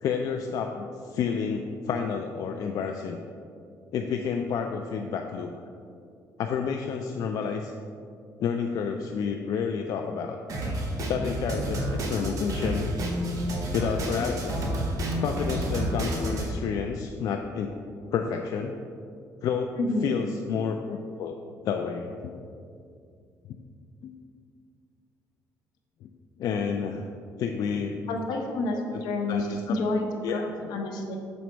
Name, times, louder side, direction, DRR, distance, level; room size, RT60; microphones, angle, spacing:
voice 1, 0.0-3.2 3.9-5.5 6.4-7.7 8.4-10.4 11.1-12.9 13.7-14.7 15.2-17.7 18.1-18.8 19.4-19.7 20.0-21.3 21.6-22.3 24.0-24.1 26.0-26.1 26.4-27.1 27.4-28.0 28.9-29.0 29.3-29.8 30.2-30.4, left 6 dB, 60° left, 4 dB, 0.4 m, -30 dB
Drum kit, 10.5-16.5, right 1 dB, 55° right, 1.0 m, -30 dB
voice 2, 19.7-20.2 28.1-30.1 30.3-31.2, left 2 dB, 80° left, 3 dB, 0.8 m, -29 dB
6.2 x 4.0 x 4.5 m, 2.4 s
cardioid pair, 115°, 7 cm